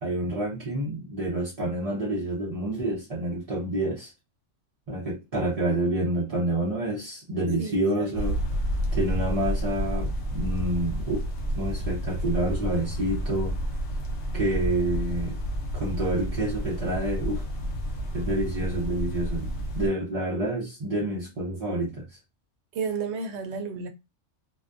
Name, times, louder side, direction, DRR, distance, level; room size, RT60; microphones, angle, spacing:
voice 1, 0.0-4.1 4.9-8.4 8.9-11.3 11.5-13.6 14.3-15.4 15.7-17.5 18.1-22.1, right 1 dB, 45° right, 0.5 m, -28 dB
voice 2, 7.6-8.2 22.7-23.9, right 5 dB, 70° right, 0.8 m, -32 dB
sound 1, 8.1-19.9, equal, 75° left, 1.0 m, -30 dB
2.2 x 2.2 x 2.5 m
omnidirectional pair, 1.2 m